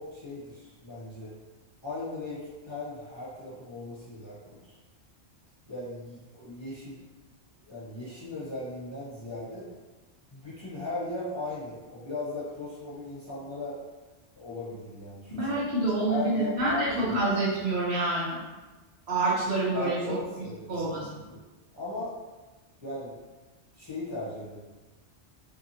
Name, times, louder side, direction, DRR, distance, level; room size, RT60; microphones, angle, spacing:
voice 1, 0.0-1.3 1.8-4.7 5.7-7.0 7.6-9.7 10.3-13.8 14.4-15.5 16.1-17.2 19.7-20.9 21.3-21.4 21.7-22.1 22.8-23.2 23.8-24.6, left 2 dB, 30° left, -10 dB, 0.7 m, -37 dB
voice 2, 15.3-18.4 19.1-20.2 20.7-21.1, right 2 dB, 65° right, -7 dB, 1.1 m, -27 dB
2.7 x 2.6 x 2.7 m, 1.2 s
omnidirectional pair, 1.2 m